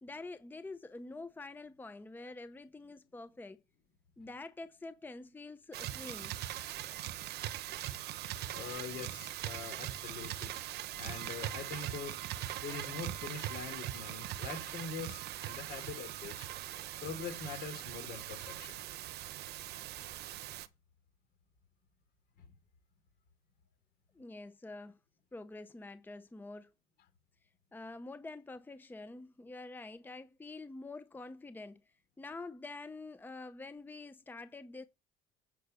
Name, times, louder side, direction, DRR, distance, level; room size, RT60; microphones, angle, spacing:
voice 1, 0.0-3.6 4.2-6.4 24.1-25.0 25.3-26.7 27.7-31.8 32.2-34.8, left 3 dB, 10° left, 0.7 m, -47 dB
sound 1, 5.7-20.7, right 13 dB, 75° right, 0.9 m, -41 dB
voice 2, 8.5-10.5 11.0-12.2 12.6-16.5 17.0-18.8 22.4-22.5, left 5 dB, 70° left, 3.5 m, -44 dB
9.3 x 5.8 x 5.5 m
cardioid pair, 110°, 17 cm